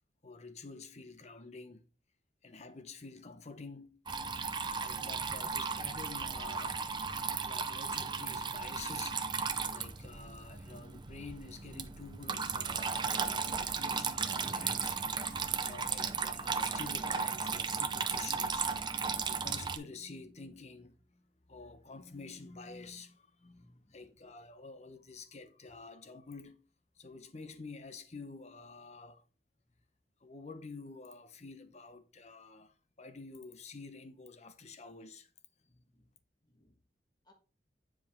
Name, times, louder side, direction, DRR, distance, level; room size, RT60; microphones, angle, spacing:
voice 1, 0.2-1.8 2.4-4.0 4.8-7.0 7.4-15.3 15.6-21.2 21.5-26.7 27.0-29.3 30.2-35.3, left 4 dB, 40° left, 0.9 m, -49 dB
Water tap faucet / Trickle dribble, 4.1-19.8, right 5 dB, 25° right, 0.6 m, -35 dB
voice 2, 23.4-24.3 25.7-25.8 35.7-36.1 36.4-36.8 37.2-37.3, left 1 dB, 25° left, 1.5 m, -66 dB
9.7 x 4.9 x 3.7 m
head